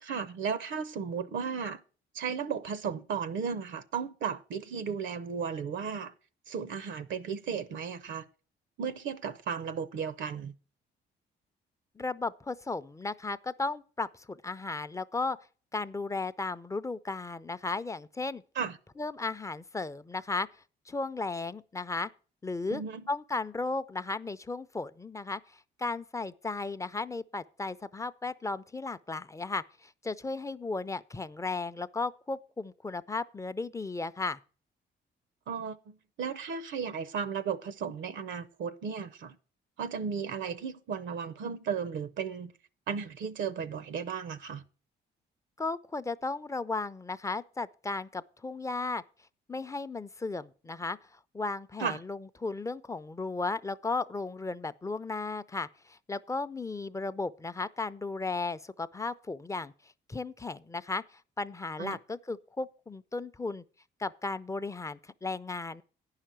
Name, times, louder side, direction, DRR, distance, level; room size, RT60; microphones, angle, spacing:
voice 1, 0.0-1.8 2.1-6.1 6.5-8.3 8.8-10.5 18.5-18.8 22.7-23.1 35.5-39.4 39.8-42.5 42.9-44.6 51.8-52.0 61.8-62.0, right 6 dB, 70° right, 0.6 m, -35 dB
voice 2, 12.0-15.4 15.7-18.4 19.0-20.5 20.9-22.1 22.4-22.8 23.1-34.4 45.6-49.0 49.5-59.7 60.1-63.6 64.0-65.8, left 3 dB, 15° left, 0.5 m, -35 dB
9.7 x 5.7 x 7.4 m
cardioid pair, 90°, 20 cm